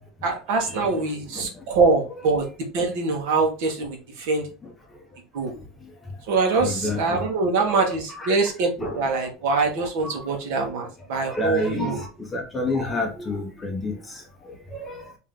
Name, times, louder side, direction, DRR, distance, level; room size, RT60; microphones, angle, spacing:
voice 1, 0.2-2.5 2.7-4.5 5.3-5.5 6.3-12.0, right 4 dB, 60° right, 1.2 m, -24 dB
voice 2, 6.6-7.3 7.7-8.4 8.8-9.0 11.3-12.1 12.3-14.0 14.8-15.0, left 2 dB, 10° left, 0.7 m, -28 dB
3.5 x 2.8 x 3.5 m
cardioid pair, 180°, 0 cm